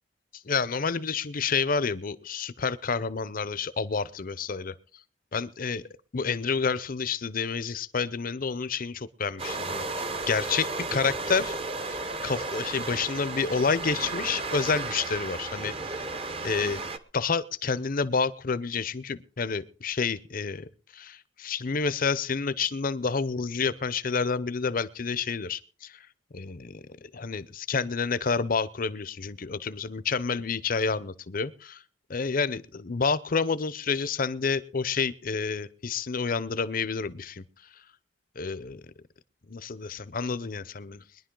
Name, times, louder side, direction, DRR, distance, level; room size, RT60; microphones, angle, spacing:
voice 1, 0.4-4.7 5.3-5.8 6.1-9.8 10.3-16.1 16.4-16.8 17.1-26.0 26.3-31.8 32.1-37.4 38.4-38.8 39.5-41.0, left 5 dB, 45° left, 16 dB, 0.7 m, -29 dB
sound 1, 9.4-17.0, right 3 dB, 30° right, 0.9 m, -34 dB
22.0 x 11.0 x 3.8 m, 0.42 s
head